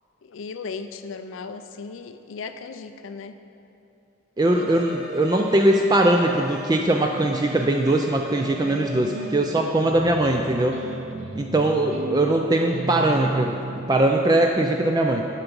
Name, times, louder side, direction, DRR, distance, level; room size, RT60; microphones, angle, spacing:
voice 1, 0.2-3.3 4.5-4.9, left 4 dB, 85° left, 9 dB, 0.4 m, -36 dB
sound 1, 4.4-9.5, right 1 dB, ahead, 1.3 m, -41 dB
voice 2, 4.4-10.8 11.3-13.6 13.9-15.3, right 1 dB, 20° right, 2 dB, 0.3 m, -21 dB
sound 2, 7.1-14.2, right 2 dB, 80° right, 0.6 m, -36 dB
11.0 x 5.9 x 5.3 m, 2.8 s
head